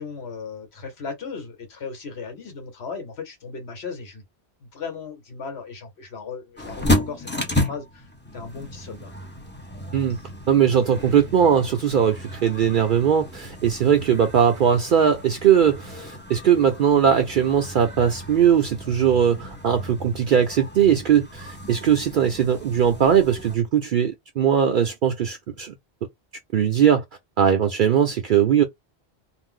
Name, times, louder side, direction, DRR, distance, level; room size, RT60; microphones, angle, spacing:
voice 1, 0.0-4.2 4.6-9.1, left 5 dB, 75° left, 1.3 m, -36 dB
sound 1, 6.6-23.6, left 1 dB, 15° left, 0.6 m, -32 dB
voice 2, 10.5-25.7 26.5-27.0 27.4-28.6, right 8 dB, 60° right, 0.6 m, -20 dB
2.6 x 2.0 x 3.7 m
omnidirectional pair, 1.1 m